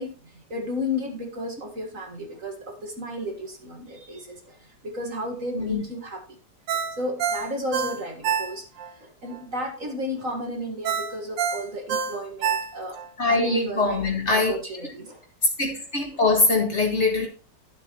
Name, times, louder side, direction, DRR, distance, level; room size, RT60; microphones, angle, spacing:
voice 1, 0.0-6.4 6.7-8.7 9.0-13.0 13.3-15.2, left 1 dB, 45° right, 2.0 m, -33 dB
Ringtone, 6.7-8.9 9.3-9.4 10.9-13.1 13.5-13.6, right 7 dB, 80° right, 1.6 m, -27 dB
voice 2, 13.2-14.9 15.6-17.3, left 3 dB, 40° left, 2.1 m, -23 dB
12.0 x 7.2 x 3.0 m
omnidirectional pair, 2.0 m